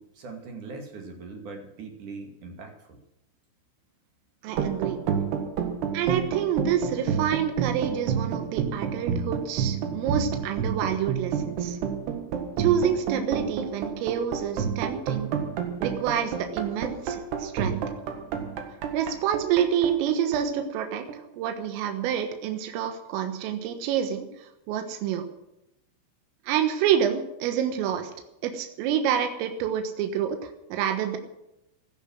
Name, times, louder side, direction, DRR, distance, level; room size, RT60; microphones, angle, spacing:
voice 1, 0.0-3.0, right 4 dB, 45° right, 3 dB, 3.2 m, -41 dB
voice 2, 4.4-5.0 5.9-11.8 12.6-15.3 15.8-17.8 18.9-24.3 24.7-25.2 26.5-28.1 28.4-31.2, right 9 dB, 80° right, 6 dB, 4.0 m, -27 dB
sound 1, 4.5-21.4, right 7 dB, 65° right, 3.3 m, -29 dB
16.0 x 12.0 x 6.4 m, 0.85 s
omnidirectional pair, 5.9 m